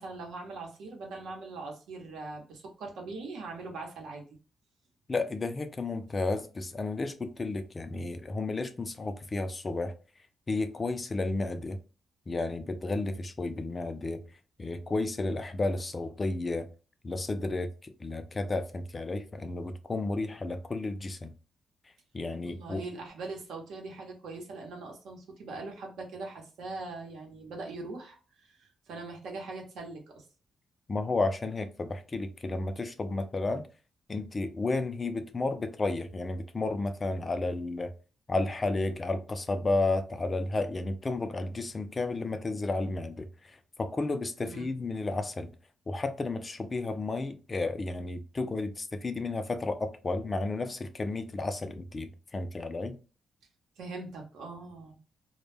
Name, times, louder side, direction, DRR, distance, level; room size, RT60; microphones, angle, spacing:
voice 1, 0.0-4.2 22.4-30.2 44.4-44.7 53.8-55.0, right 3 dB, 85° right, 0.8 m, -41 dB
voice 2, 5.1-9.9 10.5-11.8 12.3-14.2 14.6-16.7 17.0-21.3 22.1-22.8 30.9-33.7 34.1-37.9 38.3-45.5 45.9-53.0, left 2 dB, 30° left, 0.4 m, -32 dB
2.1 x 2.1 x 3.1 m
cardioid pair, 105°, 0 cm